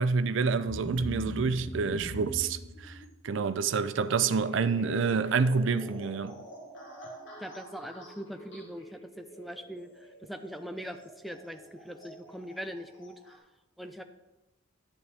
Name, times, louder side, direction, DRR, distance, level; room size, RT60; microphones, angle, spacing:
voice 1, 0.0-3.0 3.2-6.4, right 5 dB, 65° right, 0.4 m, -28 dB
sound 1, 0.7-13.3, equal, 65° left, 1.8 m, -44 dB
voice 2, 7.4-13.4 13.8-14.0, equal, ahead, 0.5 m, -42 dB
10.5 x 7.1 x 3.4 m
head